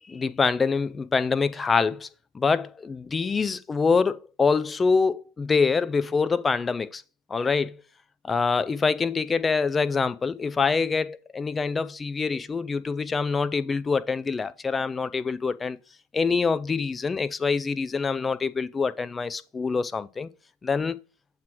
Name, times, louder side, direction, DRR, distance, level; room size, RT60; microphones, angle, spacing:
voice 1, 0.1-2.1 2.3-7.0 7.3-7.8 8.2-15.8 16.1-20.3 20.6-21.0, left 4 dB, 15° left, 0.5 m, -25 dB
7.4 x 3.0 x 6.0 m
hypercardioid pair, 95°, 0 cm